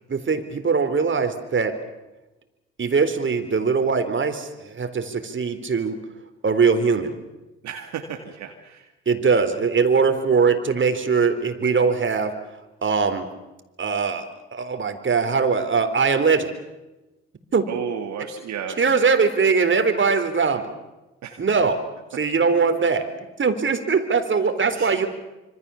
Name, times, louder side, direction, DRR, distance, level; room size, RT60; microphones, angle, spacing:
voice 1, 0.1-1.8 2.8-6.0 6.4-7.1 9.1-12.4 12.8-13.3 13.8-16.5 17.5-17.6 18.8-20.7 21.4-21.8 22.1-23.1 23.4-25.1, right 5 dB, 40° right, 8 dB, 3.8 m, -21 dB
voice 2, 7.6-8.9 17.7-18.8 21.2-21.4 24.7-25.0, right 7 dB, 60° right, 3 dB, 2.4 m, -33 dB
26.5 x 25.5 x 7.2 m, 1.0 s
hypercardioid pair, 45°, 31 cm